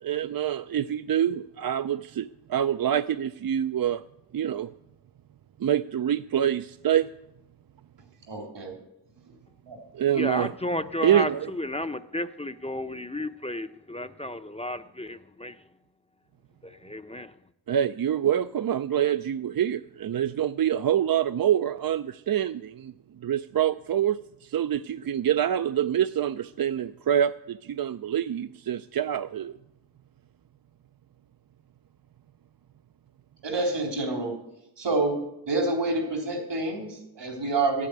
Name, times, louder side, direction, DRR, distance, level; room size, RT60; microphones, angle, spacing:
voice 1, 0.0-4.0 4.3-4.7 5.6-7.1 9.9-10.5 11.0-11.5 17.7-22.9 23.2-29.6, right 10 dB, 55° right, 0.5 m, -26 dB
voice 2, 8.3-8.8 9.7-9.8 33.4-34.4 34.8-35.2 35.5-37.9, right 2 dB, 85° right, 3.8 m, -27 dB
voice 3, 10.1-15.5 16.6-17.3, left 1 dB, 15° left, 0.6 m, -33 dB
13.5 x 8.5 x 9.3 m
wide cardioid pair, 70°, 42 cm